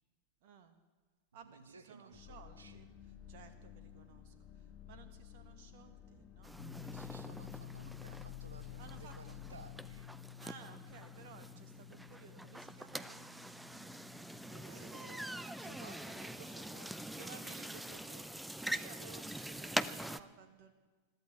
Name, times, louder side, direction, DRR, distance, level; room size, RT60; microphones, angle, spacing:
voice 1, 0.4-0.8 1.3-2.9 3.3-6.6 8.8-9.4 10.4-15.8 17.2-20.7, right 7 dB, 50° right, 9 dB, 1.4 m, -57 dB
voice 2, 1.3-2.9 6.8-10.1 14.6-17.3, right 4 dB, 70° right, 11 dB, 1.4 m, -58 dB
sound 1, 2.1-10.0, left 10 dB, 30° left, 1.8 m, -54 dB
sound 2, 6.4-20.2, right 1 dB, 5° right, 0.6 m, -44 dB
sound 3, 6.6-17.1, left 12 dB, 65° left, 0.6 m, -53 dB
21.5 x 14.0 x 4.7 m, 1.3 s
figure-of-eight pair, 90°, 0 cm